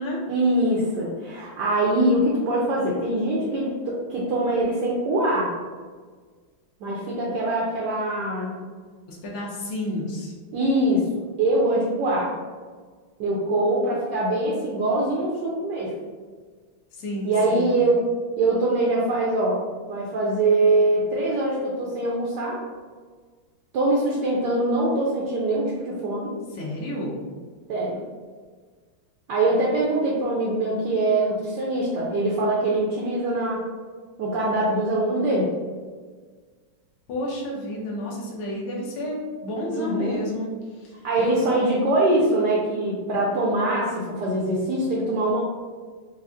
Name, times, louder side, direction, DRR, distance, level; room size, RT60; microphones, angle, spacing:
voice 1, 0.3-5.5 6.8-8.6 10.5-11.0 11.4-12.3 13.2-15.9 17.2-18.0 18.4-19.6 19.9-22.6 23.7-26.3 27.7-28.0 29.3-33.6 34.2-35.5 39.7-40.2 41.0-45.4, right 2 dB, 75° right, -4 dB, 1.0 m, -23 dB
voice 2, 9.1-10.3 16.9-17.8 26.5-27.2 37.1-41.3, left 1 dB, 85° left, -4 dB, 1.6 m, -31 dB
4.7 x 2.3 x 2.4 m, 1.5 s
omnidirectional pair, 2.3 m